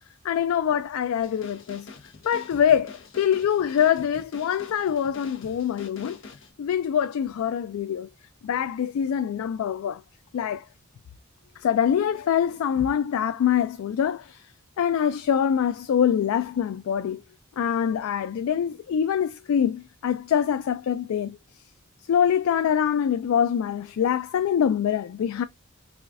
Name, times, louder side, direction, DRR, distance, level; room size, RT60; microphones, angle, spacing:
voice 1, 0.2-1.9 2.2-6.2 6.6-8.1 8.4-10.0 10.3-10.6 11.6-14.4 14.8-17.2 17.6-21.4 22.1-25.4, left 8 dB, 85° left, 0.3 m, -24 dB
sound 1, 1.2-6.5, left 4 dB, 65° left, 0.9 m, -45 dB
4.8 x 2.3 x 2.5 m
head